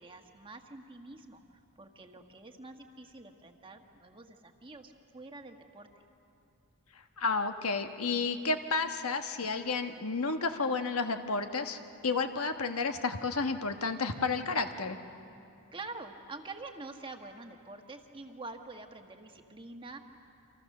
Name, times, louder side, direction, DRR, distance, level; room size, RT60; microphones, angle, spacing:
voice 1, 0.0-1.4 1.8-5.9 15.7-20.0, right 3 dB, 20° right, 4 dB, 1.4 m, -46 dB
voice 2, 7.2-15.0, left 4 dB, 75° left, 6 dB, 1.3 m, -31 dB
29.5 x 26.0 x 6.6 m, 2.7 s
head